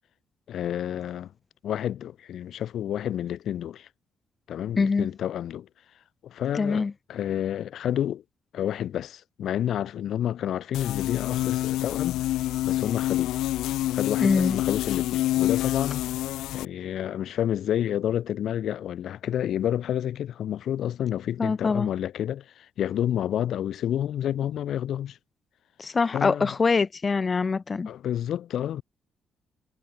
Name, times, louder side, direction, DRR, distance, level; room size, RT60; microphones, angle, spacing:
voice 1, 0.5-1.3 1.6-3.9 4.5-5.7 6.2-8.2 8.5-12.3 12.6-13.3 13.9-16.1 16.5-25.2 26.1-26.5 27.9-28.8, left 10 dB, 70° left, 2.1 m, -29 dB
voice 2, 4.8-5.1 6.5-6.9 14.2-14.6 21.4-21.9 25.8-27.9, left 4 dB, 35° left, 0.5 m, -24 dB
sound 1, 10.7-16.7, left 15 dB, 90° left, 0.8 m, -27 dB
cardioid pair, 90°, 0 cm